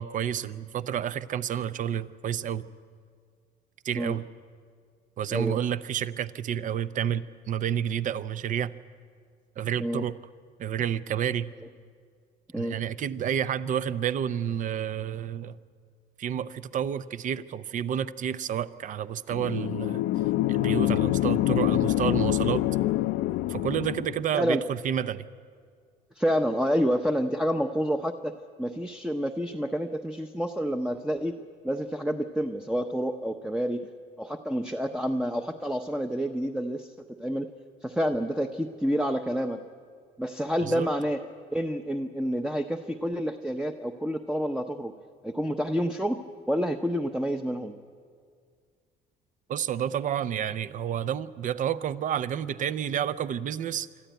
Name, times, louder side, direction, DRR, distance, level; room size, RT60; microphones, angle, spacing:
voice 1, 0.0-2.7 3.8-4.3 5.2-8.7 9.6-10.1 10.6-11.5 12.5-15.6 16.2-20.0 20.5-22.6 23.5-25.2 40.6-40.9 49.5-53.9, right 9 dB, 50° right, 16 dB, 0.7 m, -30 dB
sound 1, 19.3-24.3, left 16 dB, 80° left, 0.5 m, -26 dB
voice 2, 26.2-31.3 31.6-33.8 34.2-36.9 37.2-37.5 37.8-39.6 40.2-41.2 41.5-44.9 45.2-46.2 46.5-47.7, equal, 5° right, 5 dB, 0.7 m, -28 dB
25.0 x 13.5 x 9.2 m, 2.1 s
cardioid pair, 110°, 17 cm